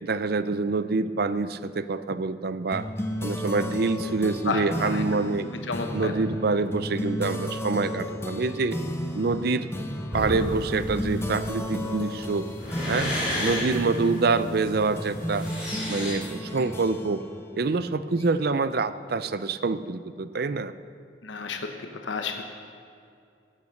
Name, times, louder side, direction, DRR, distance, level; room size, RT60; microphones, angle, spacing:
voice 1, 0.0-2.9 3.2-5.5 5.9-8.8 9.1-9.7 10.1-12.5 12.9-13.1 13.4-15.5 15.9-17.2 17.5-20.7, right 3 dB, 55° right, 14 dB, 0.5 m, -26 dB
sound 1, 2.7-18.6, equal, 15° left, 1.0 m, -34 dB
voice 2, 4.4-5.0 5.7-6.1 13.4-13.6 21.2-21.6 22.0-22.4, left 4 dB, 85° left, 5 dB, 1.1 m, -31 dB
sound 2, 10.1-16.1, left 1 dB, 5° right, 4.2 m, -32 dB
17.0 x 8.8 x 6.6 m, 2.5 s
head